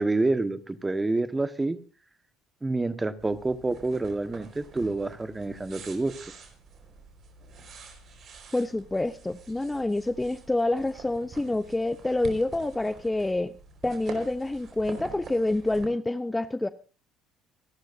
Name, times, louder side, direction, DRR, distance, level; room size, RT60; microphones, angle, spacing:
voice 1, 0.0-1.8 2.6-6.3, right 2 dB, 15° right, 12 dB, 1.4 m, -28 dB
sound 1, 3.2-15.9, right 4 dB, 50° right, 4.6 m, -46 dB
voice 2, 8.5-13.6 13.8-16.7, left 2 dB, 10° left, 13 dB, 0.7 m, -27 dB
27.0 x 12.0 x 2.7 m, 0.36 s
supercardioid pair, 80°, 0 cm